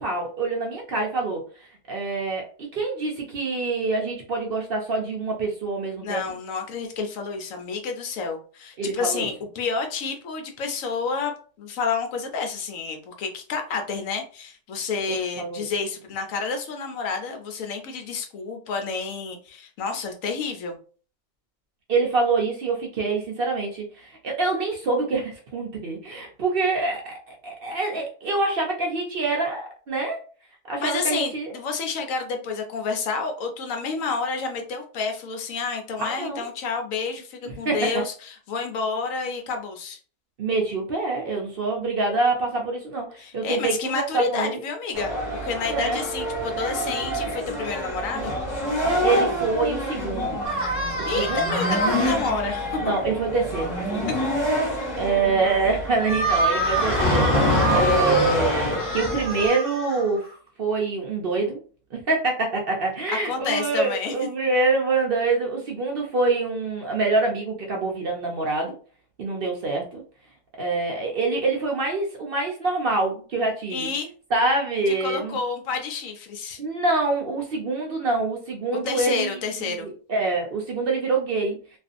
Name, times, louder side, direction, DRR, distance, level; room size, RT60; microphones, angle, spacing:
voice 1, 0.0-6.2 8.8-9.3 15.4-15.6 21.9-30.2 30.7-31.5 36.1-36.4 37.4-37.9 40.4-44.6 45.7-46.0 48.8-50.4 51.1-51.4 52.8-54.1 55.0-60.2 60.6-61.6 61.9-68.8 69.2-70.0 70.6-73.9 74.3-75.4 76.6-81.6, right 3 dB, 65° right, 0 dB, 0.5 m, -25 dB
voice 2, 6.0-11.3 11.6-20.8 30.8-40.0 43.2-48.3 50.9-52.8 63.2-64.1 73.7-74.1 74.9-76.6 78.7-79.9, left 4 dB, 70° left, 5 dB, 0.9 m, -29 dB
sound 1, 44.9-59.5, equal, 25° left, 1.0 m, -26 dB
sound 2, 50.4-52.3 56.0-60.3, right 2 dB, 10° right, 0.9 m, -27 dB
2.5 x 2.4 x 2.4 m, 0.39 s
omnidirectional pair, 1.6 m